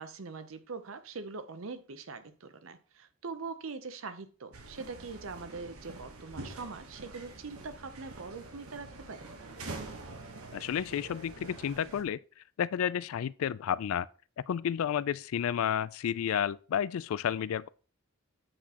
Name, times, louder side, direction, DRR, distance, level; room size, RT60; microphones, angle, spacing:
voice 1, 0.0-9.3, right 4 dB, 65° right, 0.7 m, -42 dB
sound 1, 4.5-12.0, right 2 dB, 85° right, 1.2 m, -46 dB
voice 2, 10.5-12.2 12.6-14.1 14.5-17.7, left 9 dB, 70° left, 0.3 m, -31 dB
7.8 x 6.2 x 2.9 m
head